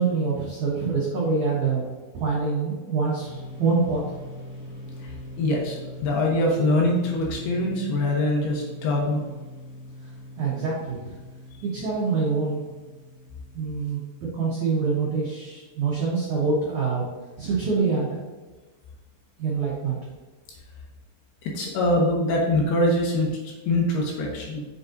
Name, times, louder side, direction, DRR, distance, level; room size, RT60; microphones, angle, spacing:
voice 1, 0.0-1.8 2.1-4.2 10.4-11.2 11.6-12.6 13.5-14.0 14.3-17.1 17.4-18.2 19.4-20.0, right 4 dB, 75° right, -6 dB, 1.7 m, -25 dB
sound 1, 3.2-16.7, left 1 dB, 35° left, 2.0 m, -42 dB
voice 2, 5.4-9.2 21.5-24.7, left 1 dB, 70° left, -2 dB, 2.7 m, -23 dB
7.3 x 6.6 x 2.6 m, 1.2 s
omnidirectional pair, 5.3 m